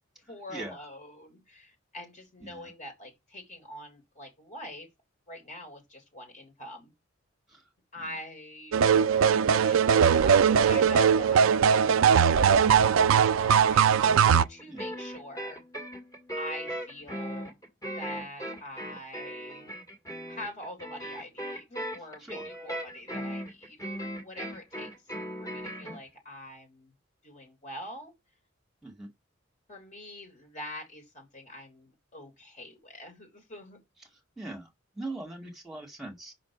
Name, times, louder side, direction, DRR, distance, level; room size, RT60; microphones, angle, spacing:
voice 1, 0.3-4.9 5.3-6.9 7.9-8.8 9.4-11.8 12.2-12.8 13.2-15.6 16.3-17.6 17.9-19.8 20.3-24.9 25.4-26.9 27.2-28.1 29.7-33.8, left 1 dB, 35° left, 3.4 m, -44 dB
sound 1, 8.7-14.4, right 7 dB, 85° right, 0.4 m, -20 dB
sound 2, 14.0-26.0, equal, 15° left, 1.9 m, -38 dB
voice 2, 34.4-34.7 35.0-36.3, right 2 dB, ahead, 2.0 m, -40 dB
5.9 x 5.1 x 5.9 m
head